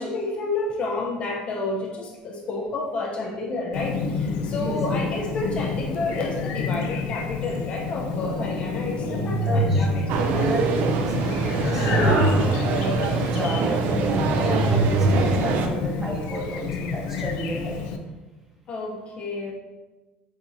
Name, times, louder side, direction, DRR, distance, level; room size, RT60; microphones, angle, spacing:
voice 1, 0.0-10.5 18.7-19.5, left 2 dB, 35° left, 0 dB, 0.5 m, -30 dB
Chirp tweet, 3.7-18.0, left 5 dB, 85° left, 0.4 m, -30 dB
voice 2, 4.6-5.0 8.8-8.9 9.4-9.8 10.2-11.1 11.5-17.8, right 1 dB, 15° right, -2 dB, 0.9 m, -31 dB
sound 1, 8.9-10.3 11.2-13.0 13.6-15.1, right 1 dB, 65° left, 1.2 m, -25 dB
sound 2, 10.1-15.7, right 4 dB, 65° right, 0.4 m, -24 dB
7.1 x 2.8 x 2.6 m, 1.2 s
cardioid pair, 155°, 3 cm